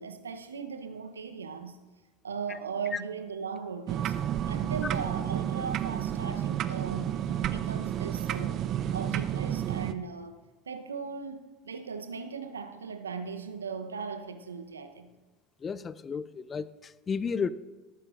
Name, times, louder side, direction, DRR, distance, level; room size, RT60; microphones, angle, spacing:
voice 1, 0.0-1.8 2.2-4.1 4.5-8.6 8.9-10.4 10.7-15.1, right 5 dB, 85° right, 0.8 m, -38 dB
sound 1, 3.9-9.9, right 10 dB, 45° right, 0.6 m, -31 dB
voice 2, 15.6-17.5, left 6 dB, 30° left, 0.5 m, -33 dB
18.0 x 14.0 x 2.5 m
figure-of-eight pair, 75°, 0 cm